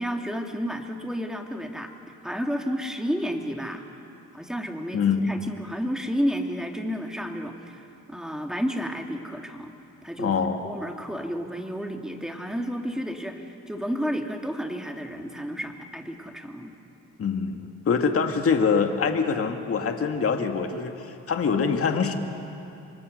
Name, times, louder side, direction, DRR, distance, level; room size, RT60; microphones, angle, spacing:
voice 1, 0.0-1.9 2.2-3.8 4.3-9.7 10.0-10.4 10.6-16.7, equal, ahead, 3 dB, 2.4 m, -31 dB
voice 2, 4.9-5.3 10.2-10.6 17.2-22.1, left 5 dB, 50° left, 4 dB, 2.1 m, -24 dB
28.5 x 23.5 x 6.7 m, 2.7 s
cardioid pair, 90°, 30 cm